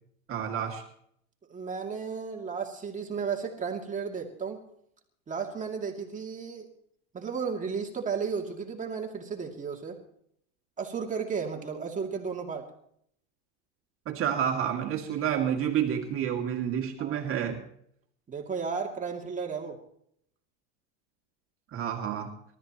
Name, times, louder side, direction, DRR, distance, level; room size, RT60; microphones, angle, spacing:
voice 1, 0.3-0.8 14.1-17.6 21.7-22.3, right 9 dB, 35° right, 1 dB, 2.5 m, -29 dB
voice 2, 1.5-4.6 5.3-6.7 7.1-10.0 10.8-12.6 17.0-17.2 18.3-19.8, right 6 dB, 20° right, 1 dB, 2.6 m, -34 dB
28.0 x 13.5 x 3.1 m, 0.68 s
supercardioid pair, 120°, 36 cm